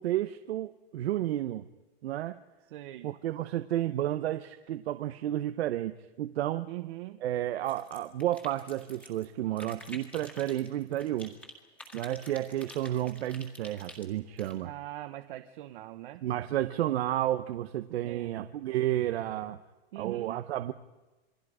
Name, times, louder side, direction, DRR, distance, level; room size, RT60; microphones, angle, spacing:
voice 1, 0.0-1.7 2.0-2.4 3.0-6.7 7.2-11.3 11.9-14.7 16.2-19.6 20.0-20.7, right 13 dB, 90° right, 10 dB, 0.9 m, -31 dB
voice 2, 2.7-3.1 6.7-7.2 14.6-16.2 17.9-18.5 19.9-20.4, right 15 dB, 55° right, 8 dB, 1.0 m, -42 dB
sound 1, 7.6-9.2 9.6-11.5 11.8-14.5, left 1 dB, 5° left, 1.9 m, -49 dB
28.0 x 22.0 x 5.0 m, 1.2 s
supercardioid pair, 175°, 31 cm